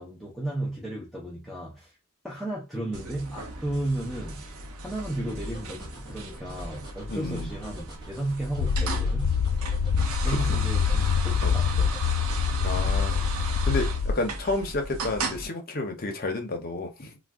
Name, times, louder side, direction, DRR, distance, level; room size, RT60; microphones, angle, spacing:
voice 1, 0.0-2.0 2.2-4.5 4.8-9.3 10.2-12.0, right 1 dB, ahead, 0.6 m, -34 dB
sound 1, 2.9-15.5, right 3 dB, 75° right, 0.6 m, -37 dB
sound 2, 5.3-13.6, right 1 dB, 20° right, 1.1 m, -47 dB
voice 2, 7.1-7.5 10.3-10.6 11.4-11.6 12.6-17.2, left 2 dB, 45° left, 0.7 m, -31 dB
sound 3, 8.6-14.1, left 6 dB, 80° left, 0.3 m, -25 dB
2.5 x 2.2 x 3.4 m
head